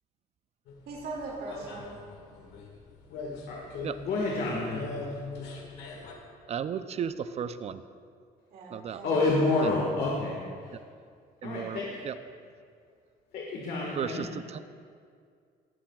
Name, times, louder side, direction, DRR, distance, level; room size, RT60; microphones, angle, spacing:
sound 1, 0.7-6.1, left 4 dB, 85° left, 1.7 m, -41 dB
voice 1, 0.9-2.0 8.5-9.9, right 3 dB, 65° right, -4 dB, 2.3 m, -40 dB
voice 2, 4.1-4.8 9.0-10.4 11.4-11.9 13.3-14.2, left 2 dB, 65° left, -2 dB, 1.6 m, -28 dB
voice 3, 6.5-7.8 8.7-9.0 9.6-9.8 11.4-12.2 13.9-14.6, right 7 dB, 40° right, 12 dB, 0.4 m, -34 dB
17.5 x 8.6 x 2.3 m, 2.2 s
cardioid pair, 110°, 17 cm